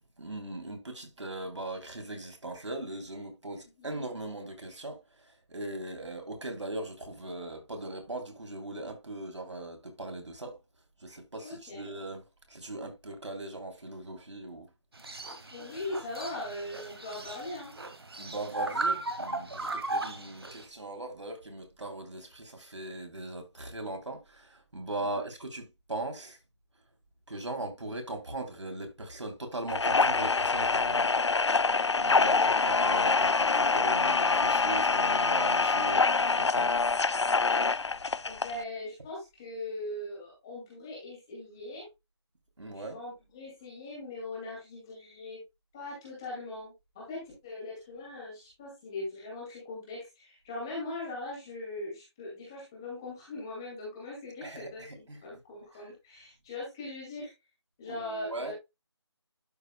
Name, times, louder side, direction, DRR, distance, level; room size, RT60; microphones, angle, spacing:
voice 1, 0.2-5.0 5.2-10.6 11.0-14.7 18.2-26.4 27.3-31.1 32.0-36.7 42.6-43.0 54.4-55.2 57.9-58.5, right 2 dB, 85° right, 3.4 m, -39 dB
voice 2, 11.4-11.9 15.5-17.7 18.3-18.8 25.0-25.2 32.3-32.6 38.2-41.9 42.7-45.4 45.7-57.3 57.8-58.5, left 2 dB, 10° left, 2.3 m, -40 dB
sound 1, 14.9-20.6, right 2 dB, 60° right, 1.8 m, -36 dB
sound 2, 29.7-38.6, left 4 dB, 75° left, 0.6 m, -25 dB
12.0 x 5.3 x 2.3 m
figure-of-eight pair, 180°, 15 cm